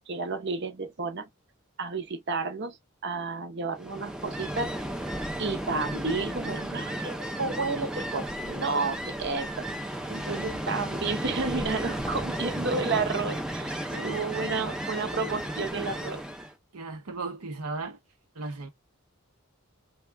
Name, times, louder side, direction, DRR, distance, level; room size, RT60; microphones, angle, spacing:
voice 1, 0.1-1.3 1.8-2.8 3.0-4.7 5.4-9.7 10.1-13.8 14.0-16.2, right 4 dB, 50° right, 0.7 m, -31 dB
Ocean, 3.7-16.5, right 1 dB, 5° right, 0.4 m, -34 dB
voice 2, 16.7-18.0 18.3-18.7, right 3 dB, 85° right, 0.8 m, -36 dB
3.5 x 2.3 x 3.3 m
head